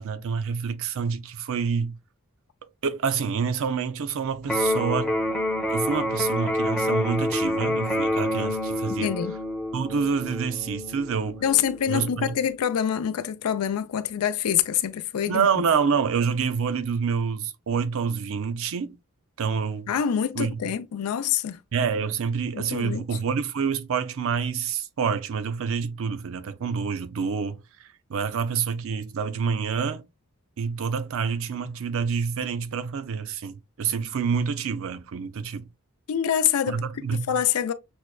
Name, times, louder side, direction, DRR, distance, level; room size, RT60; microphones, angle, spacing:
voice 1, 0.0-2.0 2.8-5.1 5.7-9.1 9.7-11.4 11.9-12.3 15.3-19.0 19.4-19.9 20.4-20.6 21.7-30.0 30.6-35.7 36.7-37.4, right 6 dB, 65° right, 0.5 m, -27 dB
Electric guitar, 4.4-12.4, left 1 dB, 5° left, 0.6 m, -28 dB
voice 2, 8.9-9.3 11.4-15.6 19.9-21.6 22.5-23.0 36.1-37.7, left 9 dB, 80° left, 0.4 m, -26 dB
6.1 x 2.1 x 2.2 m
head